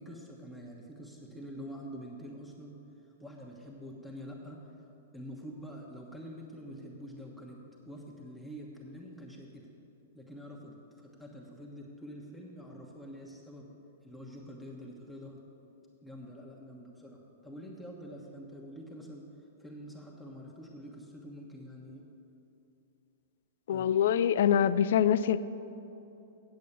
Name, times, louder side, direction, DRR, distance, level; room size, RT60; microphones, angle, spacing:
voice 1, 0.0-2.8 3.0-4.7 5.1-9.7 10.1-13.7 14.0-15.4 16.0-19.3 19.6-22.0 23.7-23.9, equal, ahead, -3 dB, 1.2 m, -46 dB
voice 2, 23.7-25.4, left 9 dB, 65° left, 15 dB, 0.3 m, -24 dB
8.6 x 7.6 x 6.8 m, 2.8 s
hypercardioid pair, 110°, 0 cm